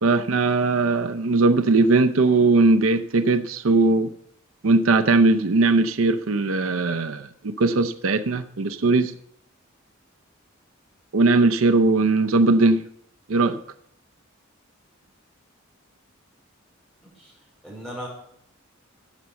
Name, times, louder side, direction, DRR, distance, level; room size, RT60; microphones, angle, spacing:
voice 1, 0.0-4.1 4.6-9.1 11.1-12.8 13.3-13.6, right 3 dB, 80° right, 9 dB, 0.6 m, -19 dB
voice 2, 17.0-17.3 17.6-18.1, equal, 5° left, -4 dB, 5.0 m, -37 dB
11.5 x 7.6 x 6.9 m, 0.68 s
head